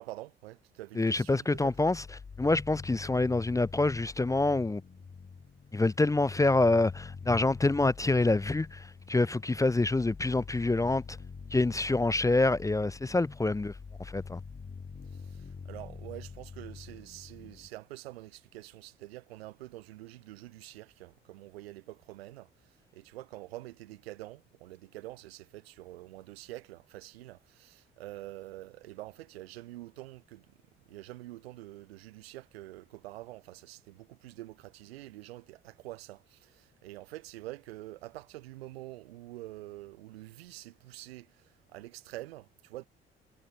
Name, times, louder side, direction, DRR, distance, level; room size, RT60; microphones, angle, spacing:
voice 1, 0.0-1.7 15.1-30.4 30.9-42.9, right 17 dB, 85° right, 0.5 m, -46 dB
voice 2, 1.0-2.0 2.4-4.8 5.7-11.2 11.5-13.7 14.0-14.4, left 2 dB, 10° left, 0.5 m, -26 dB
sound 1, 1.5-17.7, left 5 dB, 35° left, 3.3 m, -46 dB
figure-of-eight pair, 40°, 30 cm